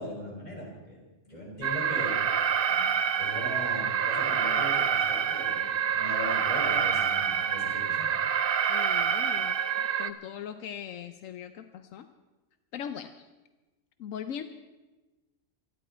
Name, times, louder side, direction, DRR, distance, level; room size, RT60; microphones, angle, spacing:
voice 1, 0.0-2.2 2.7-2.9 3.2-8.1, left 1 dB, 35° left, -3 dB, 5.5 m, -39 dB
Alarm, 1.6-10.1, right 7 dB, 50° right, 0.8 m, -27 dB
voice 2, 8.7-12.1 12.7-13.3 14.0-14.4, left 8 dB, 85° left, 9 dB, 1.1 m, -40 dB
25.5 x 11.0 x 4.4 m, 1.2 s
omnidirectional pair, 1.3 m